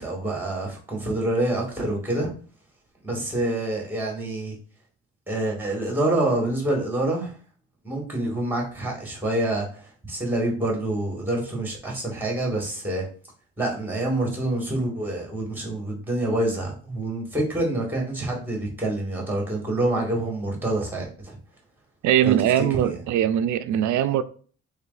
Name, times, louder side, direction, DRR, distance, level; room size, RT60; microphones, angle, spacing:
voice 1, 0.0-2.3 3.0-4.6 5.3-7.3 7.8-13.1 13.6-21.4 22.2-22.9, right 1 dB, 5° right, 1.9 m, -27 dB
voice 2, 22.0-24.2, right 11 dB, 70° right, 0.5 m, -21 dB
3.2 x 3.2 x 4.0 m
cardioid pair, 90°, 30 cm